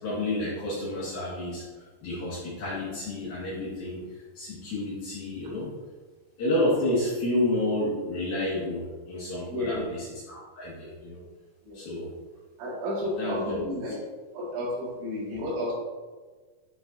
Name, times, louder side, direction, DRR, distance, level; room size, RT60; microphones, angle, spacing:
voice 1, 0.0-5.7 6.4-11.2 11.7-12.1 13.2-13.7, left 1 dB, 60° left, -9 dB, 3.6 m, -30 dB
voice 2, 9.5-9.9 11.6-11.8 12.6-14.0 14.3-15.7, left 1 dB, 85° right, -8 dB, 4.6 m, -31 dB
11.0 x 5.5 x 2.8 m, 1.4 s
omnidirectional pair, 5.0 m